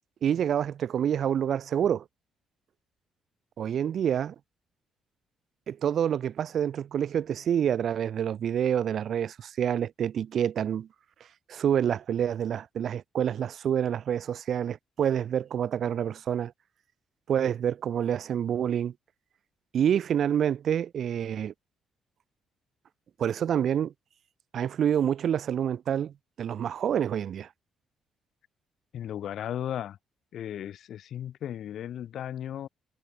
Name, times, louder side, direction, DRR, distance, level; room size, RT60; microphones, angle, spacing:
voice 1, 0.2-2.0 3.6-4.3 5.7-10.9 11.5-16.5 17.3-18.9 19.7-21.5 23.2-23.9 24.5-27.5, right 9 dB, 60° right, 0.4 m, -27 dB
voice 2, 28.9-30.0 30.3-32.7, left 10 dB, 70° left, 1.3 m, -35 dB
cardioid pair, 90°, 0 cm